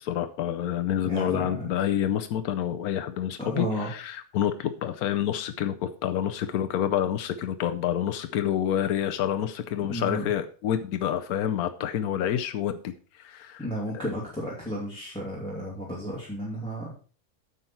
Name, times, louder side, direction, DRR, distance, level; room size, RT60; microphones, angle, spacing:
voice 1, 0.0-13.6, left 10 dB, 85° left, 9 dB, 1.2 m, -28 dB
voice 2, 1.0-1.7 3.4-3.9 9.9-10.3 13.6-16.9, equal, 5° left, -5 dB, 2.4 m, -33 dB
9.5 x 6.9 x 4.4 m, 0.40 s
omnidirectional pair, 1.5 m